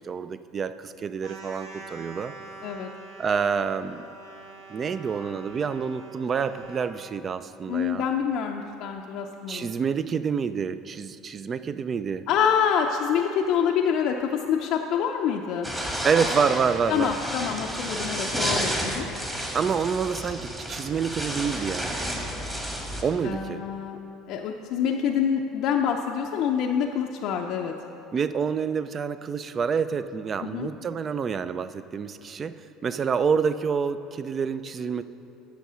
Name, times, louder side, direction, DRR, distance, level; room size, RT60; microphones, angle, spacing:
voice 1, 0.0-2.3 3.2-4.1 4.7-8.1 9.5-12.3 16.0-17.1 19.5-21.9 23.0-23.6 28.1-35.0, right 6 dB, 35° right, 13 dB, 0.4 m, -27 dB
sound 1, 1.2-7.0, right 3 dB, 80° right, 1.4 m, -44 dB
voice 2, 7.7-9.7 12.3-15.7 16.9-19.1 23.2-24.0 24.3-27.7 30.4-30.7, left 7 dB, 65° left, 1 dB, 0.5 m, -26 dB
sound 2, 15.6-23.0, equal, 10° right, 1.5 m, -31 dB
8.3 x 6.5 x 6.2 m, 2.9 s
supercardioid pair, 115°, 0 cm